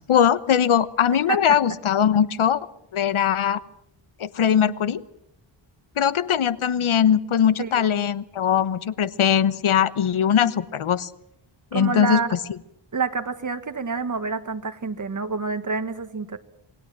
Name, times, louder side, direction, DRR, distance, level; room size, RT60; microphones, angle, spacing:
voice 1, 0.0-2.7 2.9-3.6 4.2-5.0 6.0-11.1 11.7-12.2, left 9 dB, 75° left, 16 dB, 1.1 m, -21 dB
voice 2, 11.7-12.4 12.9-16.4, right 5 dB, 40° right, 8 dB, 1.7 m, -27 dB
27.0 x 19.0 x 7.5 m, 0.80 s
wide cardioid pair, 115°, 49 cm